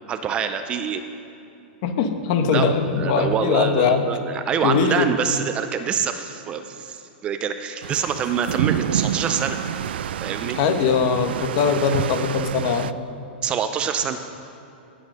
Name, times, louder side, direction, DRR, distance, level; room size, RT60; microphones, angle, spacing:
voice 1, 0.1-1.0 2.5-9.6 10.2-10.6 11.9-12.0 13.4-14.2, right 7 dB, 20° right, 8 dB, 0.4 m, -26 dB
voice 2, 1.8-4.0 4.6-5.1 10.6-12.9, left 5 dB, 45° left, 7 dB, 1.2 m, -21 dB
sound 1, 7.8-12.9, right 10 dB, 75° right, 0.4 m, -28 dB
16.5 x 7.8 x 6.3 m, 2.7 s
supercardioid pair, 160°, 6 cm